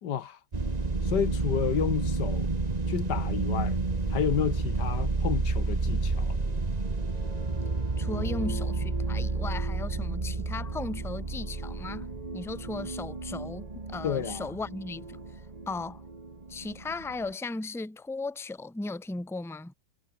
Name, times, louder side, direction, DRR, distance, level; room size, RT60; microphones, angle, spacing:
voice 1, 0.0-0.4 1.0-2.6 2.9-3.8 4.1-6.4 14.0-14.5, left 9 dB, 70° left, 1.7 m, -31 dB
sound 1, 0.5-17.3, right 3 dB, 20° right, 1.8 m, -31 dB
voice 2, 8.0-15.4 15.7-16.0 16.5-19.7, left 3 dB, ahead, 1.2 m, -37 dB
omnidirectional pair, 2.0 m